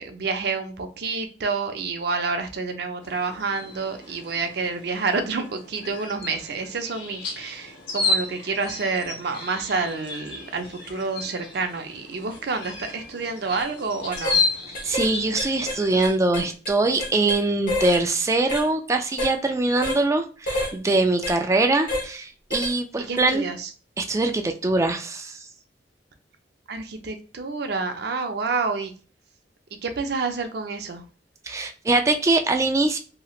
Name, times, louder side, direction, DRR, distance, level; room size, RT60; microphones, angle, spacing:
voice 1, 0.0-14.4 23.1-23.7 26.7-28.9 29.8-31.0, right 4 dB, 65° right, 6 dB, 0.5 m, -28 dB
sound 1, 3.0-16.1, left 3 dB, 70° left, 0.8 m, -32 dB
sound 2, 13.5-13.7 14.1-14.4 14.7-15.1 15.4-17.4 17.7-18.0 18.5-18.7 19.2-19.3 19.8-20.0 20.5-20.7 21.2-21.4 21.9-22.1 22.5-22.7 23.2-23.3, left 1 dB, 50° left, 1.0 m, -29 dB
voice 2, 14.8-23.4 24.0-25.4 31.5-33.0, right 2 dB, 15° right, 5 dB, 0.3 m, -23 dB
3.1 x 2.8 x 2.4 m, 0.38 s
head